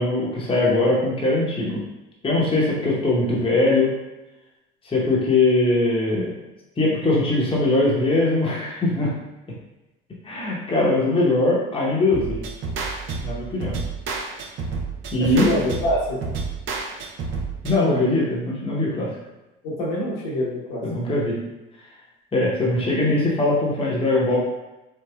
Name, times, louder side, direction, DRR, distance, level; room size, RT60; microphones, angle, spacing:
voice 1, 0.0-1.8 2.2-3.9 4.8-6.3 6.8-9.1 10.2-12.4 13.2-13.8 15.1-15.5 17.6-19.1 20.8-21.4 22.3-24.4, left 2 dB, 20° left, -5 dB, 0.8 m, -21 dB
sound 1, 12.1-17.7, right 4 dB, 45° right, 0.5 m, -30 dB
voice 2, 15.2-16.0 17.8-18.0 19.6-20.8, equal, 75° left, -6 dB, 1.1 m, -25 dB
3.5 x 2.0 x 2.2 m, 1.0 s
hypercardioid pair, 80°, 29 cm